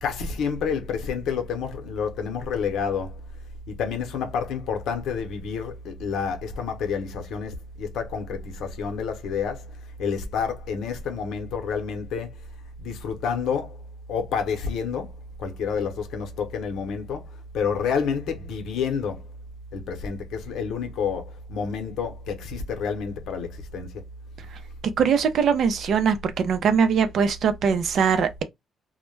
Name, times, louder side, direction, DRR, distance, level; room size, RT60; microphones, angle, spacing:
voice 1, 0.0-3.1 3.8-7.5 7.8-9.6 10.0-12.3 12.8-13.7 14.1-15.1 15.4-17.2 17.5-19.2 19.7-21.2 21.5-23.5 23.7-23.9, left 6 dB, 80° left, 0.7 m, -29 dB
voice 2, 25.0-28.4, right 6 dB, 65° right, 0.5 m, -21 dB
2.2 x 2.1 x 3.1 m
cardioid pair, 90°, 0 cm